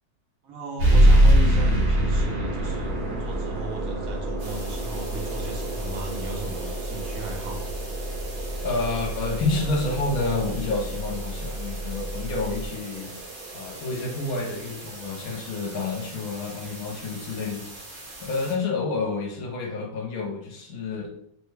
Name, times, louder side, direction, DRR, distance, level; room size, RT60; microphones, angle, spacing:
voice 1, 0.4-7.7, right 2 dB, 70° right, 0 dB, 1.1 m, -36 dB
sound 1, 0.8-15.9, right 1 dB, 85° right, 1.4 m, -25 dB
sound 2, 2.6-12.7, equal, 50° left, 1.5 m, -34 dB
sound 3, 4.4-18.5, right 1 dB, 40° right, 0.9 m, -42 dB
voice 2, 8.6-13.2 13.5-17.6 18.2-21.1, left 3 dB, 70° left, 0 dB, 1.1 m, -29 dB
3.1 x 2.2 x 3.2 m, 0.72 s
omnidirectional pair, 1.6 m